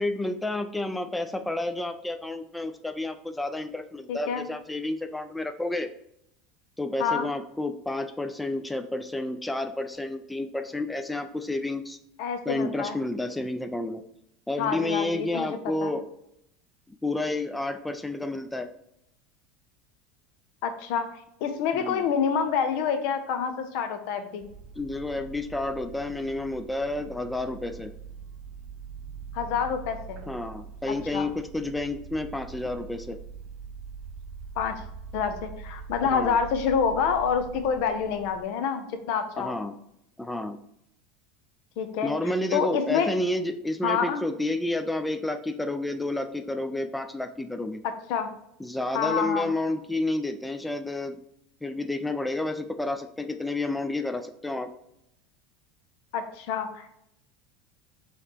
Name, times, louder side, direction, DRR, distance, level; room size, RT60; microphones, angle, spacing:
voice 1, 0.0-5.9 6.8-12.0 12.5-14.0 14.5-16.0 16.9-18.7 21.7-22.0 24.8-27.9 30.3-33.2 36.0-36.4 39.4-39.7 40.2-40.6 42.0-47.8 48.6-51.2 51.6-54.7, left 2 dB, 10° left, 7 dB, 0.3 m, -30 dB
voice 2, 4.1-4.4 7.0-7.3 12.2-13.0 14.6-15.9 20.6-21.1 21.4-24.5 29.3-30.3 31.1-31.3 34.6-34.8 35.1-39.6 41.8-43.1 43.8-44.2 47.8-48.3 48.9-49.5 56.1-56.9, left 6 dB, 65° left, 8 dB, 0.6 m, -27 dB
sound 1, 24.4-38.4, right 6 dB, 45° right, 0.6 m, -43 dB
3.9 x 3.0 x 3.3 m, 0.78 s
hypercardioid pair, 80°, 0 cm